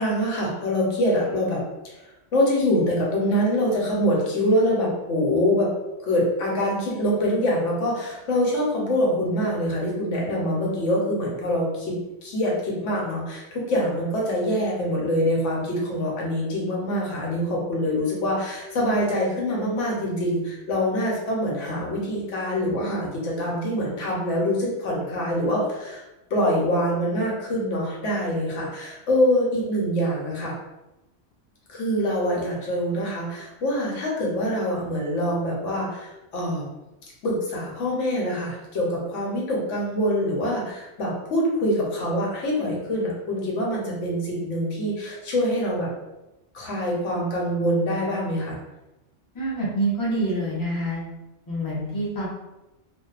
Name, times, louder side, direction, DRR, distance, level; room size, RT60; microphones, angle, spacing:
voice 1, 0.0-1.6 2.3-5.7 6.0-26.0 26.3-30.5 31.7-36.6 37.2-45.9 46.5-48.6, equal, 90° left, -3 dB, 1.1 m, -25 dB
voice 2, 49.3-51.0 51.5-52.3, right 1 dB, 20° left, -7 dB, 0.6 m, -26 dB
2.6 x 2.1 x 2.4 m, 0.97 s
omnidirectional pair, 1.2 m